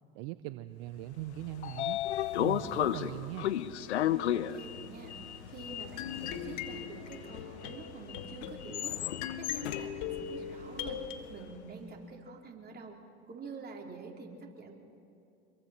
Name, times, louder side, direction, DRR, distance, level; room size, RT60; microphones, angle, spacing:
voice 1, 0.1-2.0 2.3-3.5, right 16 dB, 60° right, 13 dB, 0.7 m, -40 dB
Sliding door, 1.2-11.3, left 11 dB, 85° left, 0.7 m, -35 dB
sound 1, 2.9-7.9, equal, ahead, 6.4 m, -59 dB
voice 2, 4.3-5.2 5.5-9.0 9.4-11.0 11.3-13.0 13.3-14.8, right 4 dB, 30° right, 0 dB, 3.8 m, -47 dB
sound 2, 6.0-11.2, left 9 dB, 60° left, 1.6 m, -41 dB
26.5 x 22.5 x 4.4 m, 2.7 s
hypercardioid pair, 80°, 33 cm